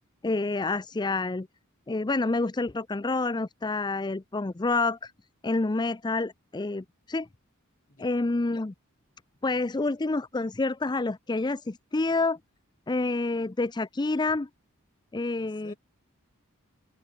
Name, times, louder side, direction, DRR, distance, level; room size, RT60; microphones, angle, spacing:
voice 1, 0.2-1.5 1.9-5.1 5.4-7.3 8.0-8.7 9.4-12.4 12.9-14.5 15.1-15.7, left 3 dB, 20° left, 0.5 m, -28 dB
voice 2, 9.5-9.8 15.4-15.8, left 2 dB, 40° left, 5.1 m, -55 dB
open air
head